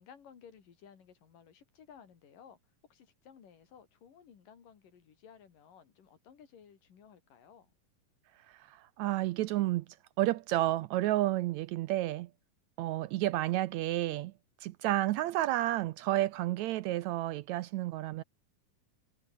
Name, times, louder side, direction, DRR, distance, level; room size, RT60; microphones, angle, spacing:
voice 1, 0.0-2.6 2.9-7.7, left 7 dB, 85° left, 4.7 m, -57 dB
voice 2, 8.7-9.8 10.2-12.3 12.8-14.3 14.6-18.2, right 15 dB, 80° right, 1.7 m, -31 dB
omnidirectional pair, 3.8 m